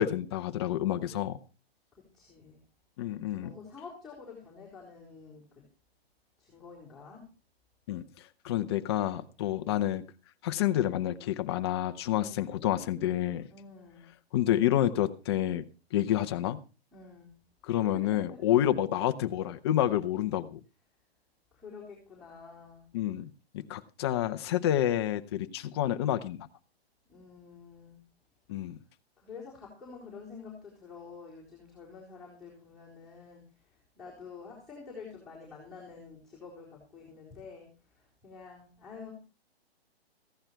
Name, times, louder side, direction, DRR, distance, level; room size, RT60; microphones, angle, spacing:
voice 1, 0.0-1.4 3.0-3.5 7.9-8.0 8.4-10.0 10.4-13.5 14.3-15.6 15.9-16.6 17.6-20.6 22.9-26.5 28.5-28.8, left 12 dB, 25° left, 9 dB, 0.8 m, -29 dB
voice 2, 2.1-2.6 3.4-5.6 6.4-7.3 12.1-12.6 13.5-14.1 16.9-17.3 17.8-18.4 21.5-22.9 27.1-28.0 29.2-39.1, left 5 dB, ahead, -8 dB, 4.2 m, -48 dB
15.5 x 11.0 x 4.5 m, 0.33 s
hypercardioid pair, 160°, 31 cm